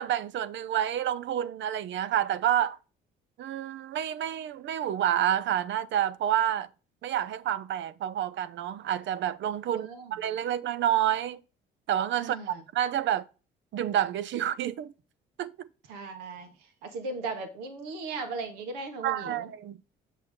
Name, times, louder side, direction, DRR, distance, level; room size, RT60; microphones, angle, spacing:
voice 1, 0.0-2.8 3.4-6.7 7.0-11.4 11.9-13.2 13.7-14.9 15.4-15.7 19.0-19.8, right 11 dB, 60° right, 0.6 m, -29 dB
voice 2, 9.7-10.1 12.2-12.6 15.9-16.5 16.8-19.5, right 3 dB, 85° right, 1.6 m, -37 dB
7.3 x 6.5 x 3.6 m
hypercardioid pair, 60°, 21 cm